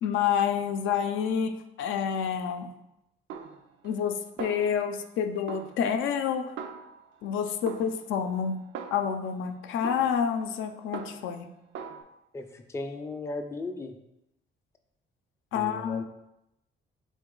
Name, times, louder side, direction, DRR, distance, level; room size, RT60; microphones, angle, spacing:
voice 1, 0.0-2.7 3.8-6.5 7.2-8.6 8.9-11.5 15.5-16.0, left 7 dB, 80° left, 6 dB, 0.4 m, -28 dB
Snare drum, 3.3-4.1 4.4-5.1 5.5-7.3 7.7-9.3 9.8-11.4 11.7-12.0, right 6 dB, 75° right, 0.4 m, -42 dB
voice 2, 12.3-13.9 15.5-16.0, left 3 dB, 15° left, 5 dB, 0.4 m, -36 dB
3.9 x 3.0 x 3.7 m, 0.88 s
cardioid pair, 90°, 20 cm